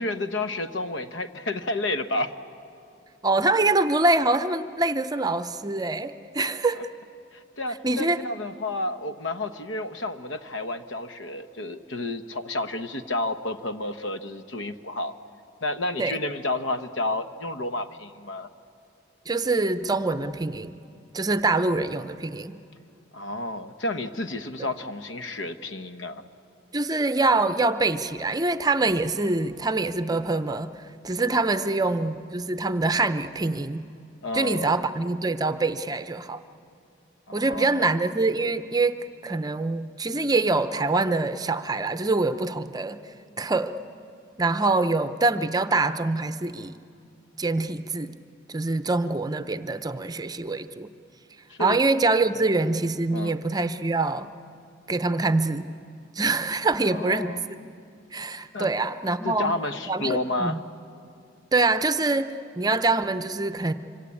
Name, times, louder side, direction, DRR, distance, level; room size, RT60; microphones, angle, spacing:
voice 1, 0.0-2.3 6.8-6.9 7.3-15.1 15.6-18.5 23.1-26.2 31.5-31.7 34.2-34.9 37.3-37.9 51.5-51.8 53.1-53.4 56.9-57.5 58.5-58.7 59.2-60.6, left 2 dB, 70° left, 10 dB, 1.1 m, -31 dB
voice 2, 3.2-6.8 7.8-8.2 16.0-16.2 19.3-20.8 21.1-22.5 26.7-30.7 31.0-33.9 34.3-36.4 37.3-43.0 43.4-43.7 44.4-46.8 47.4-48.2 48.5-50.9 51.6-54.3 54.9-55.7 56.2-57.6 58.1-59.5 59.9-60.6 61.5-63.7, right 3 dB, 20° right, 11 dB, 0.6 m, -25 dB
25.5 x 25.0 x 8.5 m, 2.5 s
head